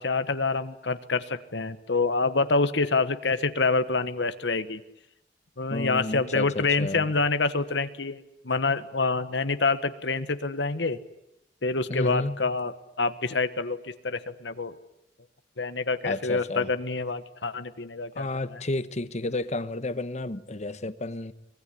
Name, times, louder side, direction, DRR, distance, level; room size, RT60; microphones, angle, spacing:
voice 1, 0.0-4.8 5.6-11.0 11.6-12.7 13.0-13.8 14.0-14.8 15.6-18.3, left 3 dB, 80° left, 1.3 m, -27 dB
voice 2, 5.7-7.1 11.9-12.4 16.0-16.7 18.2-21.3, left 2 dB, 40° left, 1.2 m, -31 dB
25.0 x 20.5 x 10.0 m
head